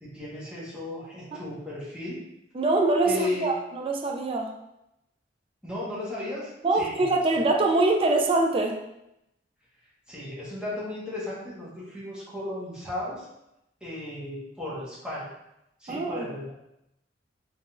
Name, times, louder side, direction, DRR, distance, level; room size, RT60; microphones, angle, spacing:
voice 1, 0.0-2.2 3.0-3.5 5.6-7.0 10.1-13.3 13.8-15.3 15.8-16.5, left 1 dB, 5° right, -8 dB, 1.4 m, -35 dB
voice 2, 2.6-4.5 6.6-8.8 15.9-16.3, right 2 dB, 30° right, 2 dB, 0.4 m, -24 dB
4.0 x 3.7 x 2.5 m, 0.86 s
head